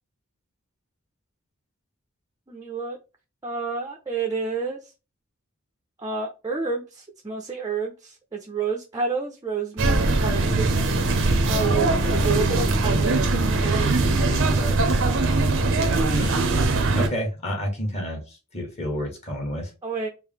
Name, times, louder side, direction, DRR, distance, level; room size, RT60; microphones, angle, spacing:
voice 1, 2.5-3.0 3.4-4.8 6.0-10.7 11.5-13.2 13.6-15.0 19.8-20.1, right 4 dB, 15° right, 0 dB, 0.6 m, -30 dB
sound 1, 9.8-17.1, right 2 dB, 65° right, 0.7 m, -21 dB
voice 2, 16.9-19.7, equal, 30° left, 1 dB, 1.4 m, -30 dB
4.5 x 2.1 x 3.6 m, 0.29 s
head